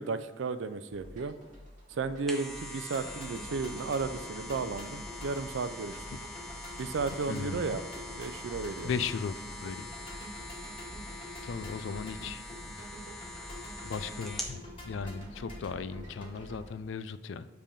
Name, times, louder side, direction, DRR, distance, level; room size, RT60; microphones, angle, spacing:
voice 1, 0.0-1.4 2.0-6.0 6.8-7.8 8.2-8.9, right 4 dB, 75° right, 12 dB, 0.4 m, -34 dB
sound 1, 0.9-16.8, equal, 40° right, 2.0 m, -53 dB
sound 2, 2.0-14.6 15.0-15.1, left 1 dB, ahead, 0.9 m, -44 dB
sound 3, 2.9-16.6, equal, 30° left, 2.0 m, -46 dB
voice 2, 7.3-7.6 8.8-9.9 11.4-12.4 13.8-17.5, left 5 dB, 75° left, 13 dB, 0.4 m, -37 dB
7.5 x 3.4 x 5.2 m, 1.3 s
head